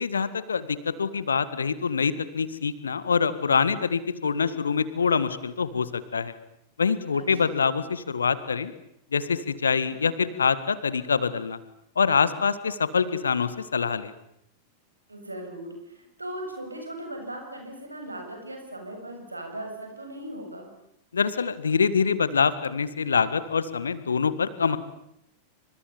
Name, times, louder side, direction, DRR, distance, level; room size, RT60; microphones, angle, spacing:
voice 1, 0.0-6.3 6.8-8.7 9.1-11.6 12.0-14.1 21.1-24.8, left 5 dB, 70° left, 15 dB, 1.9 m, -25 dB
voice 2, 7.1-7.5 15.1-20.7, right 1 dB, 85° right, 3 dB, 7.0 m, -38 dB
29.5 x 26.5 x 7.2 m, 0.76 s
figure-of-eight pair, 90°, 0 cm